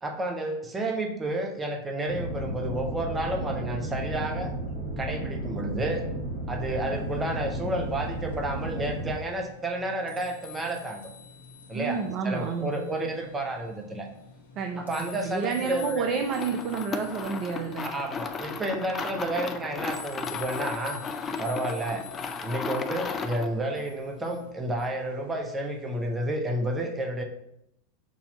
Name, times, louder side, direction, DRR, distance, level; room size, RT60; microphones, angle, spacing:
voice 1, 0.0-4.5 5.0-6.0 6.5-11.0 11.7-14.1 14.8-16.1 17.8-21.0 21.4-22.1 22.4-27.2, right 1 dB, 20° right, 3 dB, 0.9 m, -31 dB
sound 1, 2.1-9.1, right 1 dB, 60° right, 2.2 m, -33 dB
sound 2, 6.9-26.2, left 6 dB, 75° left, 1.2 m, -48 dB
voice 2, 11.7-12.7 14.6-17.9, right 6 dB, 45° right, 4 dB, 0.6 m, -30 dB
sound 3, 16.2-23.5, left 5 dB, 25° left, 0.6 m, -35 dB
6.2 x 2.9 x 5.3 m, 0.78 s
figure-of-eight pair, 85°, 0 cm